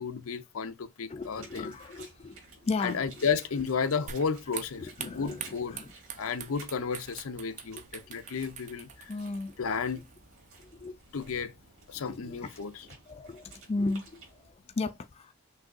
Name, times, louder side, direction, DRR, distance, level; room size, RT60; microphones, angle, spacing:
voice 1, 0.0-1.8 2.8-5.8 6.2-9.1 9.6-10.0 11.1-11.5 11.9-12.9, left 5 dB, 80° left, 0.6 m, -33 dB
voice 2, 1.1-2.4 2.6-3.0 5.0-5.4 5.7-5.8 9.1-9.5 10.8-10.9 12.0-12.1 13.1-13.4 13.7-14.2 14.8-15.3, left 3 dB, 30° left, 0.3 m, -34 dB
sound 1, 1.2-14.5, right 3 dB, 65° right, 2.7 m, -54 dB
sound 2, 4.1-10.6, right 8 dB, 35° right, 0.5 m, -45 dB
6.1 x 2.7 x 2.4 m
head